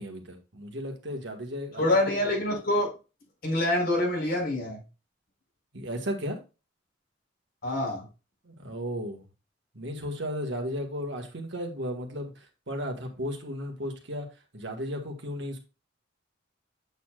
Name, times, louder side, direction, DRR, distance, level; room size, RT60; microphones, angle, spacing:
voice 1, 0.0-2.1 5.7-6.4 8.4-9.3 9.7-14.3 14.5-15.6, equal, 65° right, 4 dB, 1.7 m, -35 dB
voice 2, 1.8-2.9 3.4-4.8 7.6-8.0, left 1 dB, 50° left, -1 dB, 4.7 m, -26 dB
8.2 x 7.1 x 2.4 m, 0.30 s
head